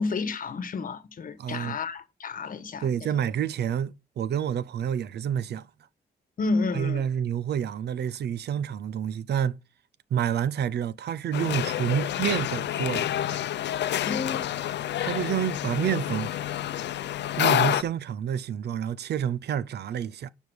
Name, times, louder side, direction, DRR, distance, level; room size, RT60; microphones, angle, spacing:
voice 1, 0.0-2.9 6.4-7.0 14.0-14.4, left 4 dB, 55° left, 1.2 m, -30 dB
voice 2, 1.4-1.8 2.8-5.7 6.7-9.6 10.1-13.1 13.8-13.9 15.0-16.3 17.4-20.3, right 9 dB, 75° right, 0.6 m, -28 dB
sound 1, 11.3-17.8, left 12 dB, 90° left, 0.6 m, -28 dB
11.5 x 5.4 x 6.3 m
wide cardioid pair, 140°, 18 cm